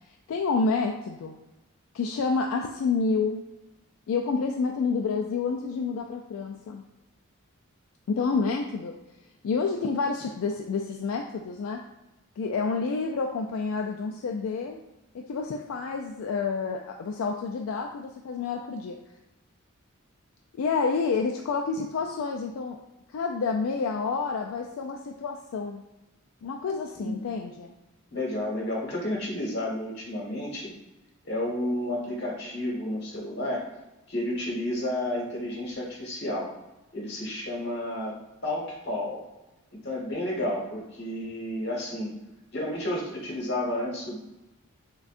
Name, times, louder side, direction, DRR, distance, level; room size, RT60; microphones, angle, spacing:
voice 1, 0.3-1.4 1.9-3.5 4.1-6.8 8.1-9.0 9.4-11.8 12.4-14.8 15.1-19.0 20.5-22.8 23.1-25.8 26.4-27.7, left 4 dB, 80° left, 2 dB, 0.3 m, -29 dB
voice 2, 27.0-27.3 28.1-30.7 31.2-33.7 34.1-36.5 36.9-39.2 39.8-42.1 42.5-44.2, left 1 dB, 50° left, -3 dB, 1.3 m, -31 dB
6.1 x 2.2 x 2.5 m, 1.0 s
head